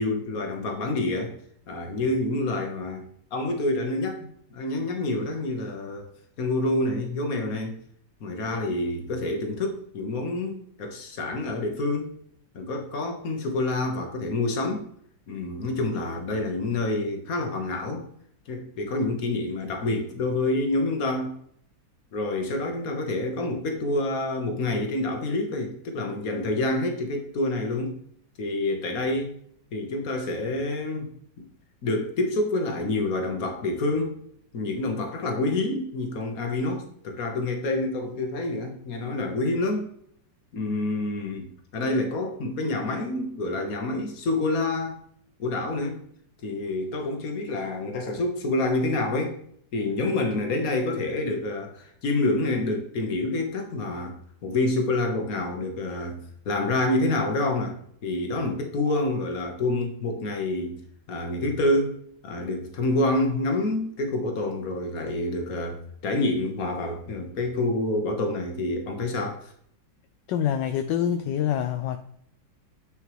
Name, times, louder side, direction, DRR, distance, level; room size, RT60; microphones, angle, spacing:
voice 1, 0.0-1.3 1.7-3.0 3.3-6.1 6.4-7.8 8.2-12.1 12.5-14.9 15.3-18.0 18.5-21.3 22.1-28.0 28.4-29.4 29.7-31.1 31.4-31.5 31.8-34.2 34.5-39.9 40.5-45.0 45.4-46.0 46.4-49.4 49.7-54.1 54.4-60.8 61.1-62.0 62.2-69.5, left 2 dB, 50° left, 4 dB, 1.6 m, -27 dB
voice 2, 70.3-72.0, left 9 dB, 75° left, 7 dB, 1.2 m, -26 dB
9.5 x 5.4 x 3.1 m, 0.66 s
omnidirectional pair, 2.1 m